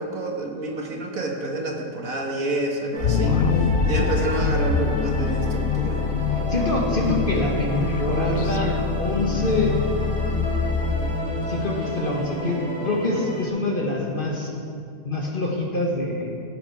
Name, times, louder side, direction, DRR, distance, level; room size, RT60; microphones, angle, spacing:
voice 1, 0.0-3.3 3.9-6.0, right 2 dB, 55° right, 1 dB, 1.7 m, -28 dB
sound 1, 2.9-13.5, equal, 5° left, 2.1 m, -31 dB
sound 2, 3.0-11.1, left 6 dB, 70° left, 0.6 m, -25 dB
voice 2, 3.2-3.5 6.3-8.7 9.0-9.7 11.5-14.5 15.0-16.3, left 2 dB, 35° left, -1 dB, 1.6 m, -25 dB
17.0 x 9.0 x 4.8 m, 2.4 s
omnidirectional pair, 1.8 m